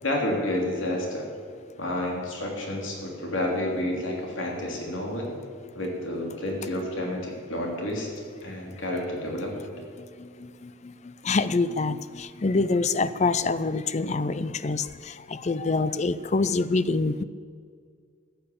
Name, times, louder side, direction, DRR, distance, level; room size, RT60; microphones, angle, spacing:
voice 1, 0.0-1.3 1.8-5.3 5.7-8.1 8.4-9.5, left 1 dB, 75° left, 0 dB, 3.1 m, -30 dB
voice 2, 8.4-8.8 10.0-17.2, left 3 dB, 35° left, 15 dB, 0.5 m, -26 dB
14.5 x 9.1 x 8.5 m, 2.1 s
head